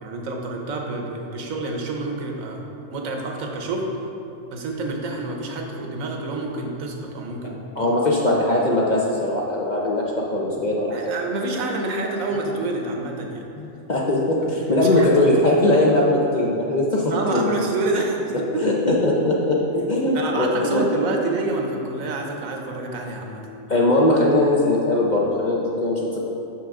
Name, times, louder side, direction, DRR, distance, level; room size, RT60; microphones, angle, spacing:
voice 1, 0.0-2.6 2.9-3.9 4.5-8.0 10.9-13.5 14.4-15.1 17.1-18.7 19.7-23.4, right 2 dB, 80° right, 1 dB, 1.2 m, -28 dB
voice 2, 7.8-10.9 13.6-17.6 18.6-19.6 19.9-20.9 23.7-26.2, left 1 dB, 50° left, -4 dB, 0.6 m, -20 dB
6.6 x 5.9 x 3.6 m, 2.8 s
omnidirectional pair, 1.4 m